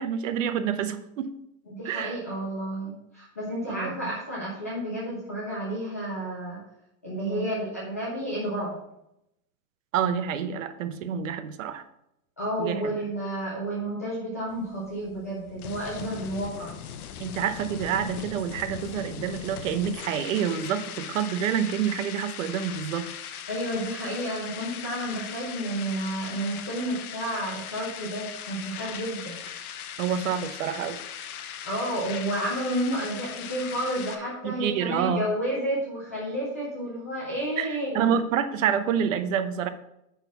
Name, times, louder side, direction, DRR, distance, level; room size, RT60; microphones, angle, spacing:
voice 1, 0.0-1.3 1.8-2.2 3.7-4.1 7.2-7.5 9.9-11.8 12.6-12.8 17.2-23.1 30.0-31.0 34.4-35.3 37.6-39.7, right 8 dB, 60° right, 11 dB, 0.9 m, -28 dB
voice 2, 1.7-6.6 7.0-8.8 12.4-16.7 23.5-29.4 31.6-38.1, right 1 dB, 15° left, -6 dB, 0.3 m, -31 dB
sound 1, 14.5-34.2, left 9 dB, 85° left, 1.1 m, -39 dB
9.2 x 4.1 x 5.8 m, 0.83 s
supercardioid pair, 170°, 43 cm